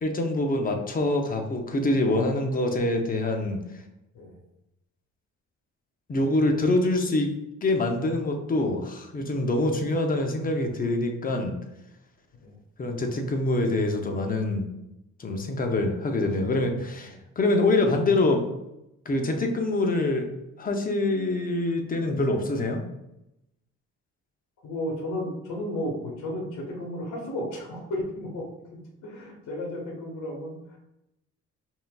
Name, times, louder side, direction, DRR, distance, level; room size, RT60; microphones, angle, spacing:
voice 1, 0.0-3.6 6.1-7.3 7.6-11.5 12.8-14.6 15.2-18.5 19.1-20.3 20.6-22.8, left 2 dB, 30° left, 3 dB, 0.7 m, -25 dB
voice 2, 16.2-16.6 24.6-28.5 29.0-30.8, left 1 dB, 75° left, -2 dB, 1.2 m, -34 dB
5.6 x 2.7 x 2.3 m, 0.88 s
cardioid pair, 90°, 30 cm